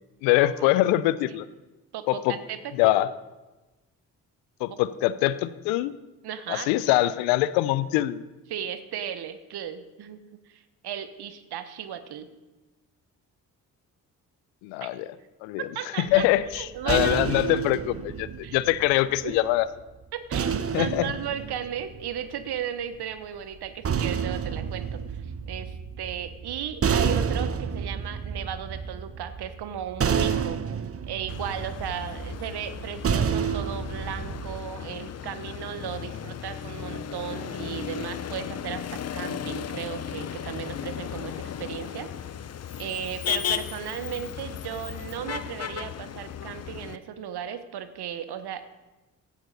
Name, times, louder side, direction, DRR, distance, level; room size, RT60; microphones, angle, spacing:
voice 1, 0.2-1.5 2.1-2.4 2.7-3.1 4.6-5.9 6.5-8.2 14.6-15.1 15.4-15.7 16.0-19.7 20.7-21.0, left 15 dB, 70° left, 17 dB, 0.7 m, -23 dB
voice 2, 1.9-3.0 6.2-6.7 8.5-10.2 10.5-12.3 14.8-14.9 15.7-16.3 16.5-17.2 18.4-18.6 19.2-19.4 20.1-30.6 31.0-42.1 42.8-48.6, right 9 dB, 55° right, 12 dB, 1.2 m, -35 dB
sound 1, 16.1-19.4 20.3-22.6 23.5-34.6, right 7 dB, 30° right, 0.8 m, -30 dB
Motor vehicle (road), 31.3-47.0, left 9 dB, 35° left, 0.7 m, -35 dB
15.5 x 11.5 x 4.1 m, 1.1 s
figure-of-eight pair, 40°, 46 cm